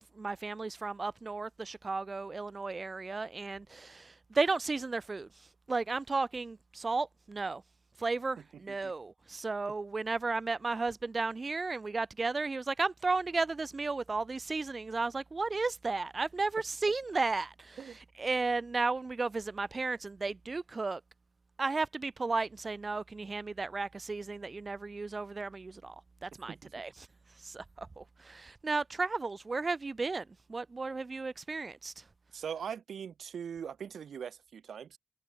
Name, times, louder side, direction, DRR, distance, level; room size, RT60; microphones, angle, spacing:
voice 1, 0.0-7.6 8.0-17.8 18.2-21.0 21.6-25.9 26.2-26.9 27.4-32.0, right 3 dB, 40° right, 1.5 m, -34 dB
voice 2, 8.5-8.9 17.8-18.0 26.5-26.8 32.3-35.0, right 7 dB, 90° right, 1.8 m, -41 dB
cardioid pair, 70°, 0 cm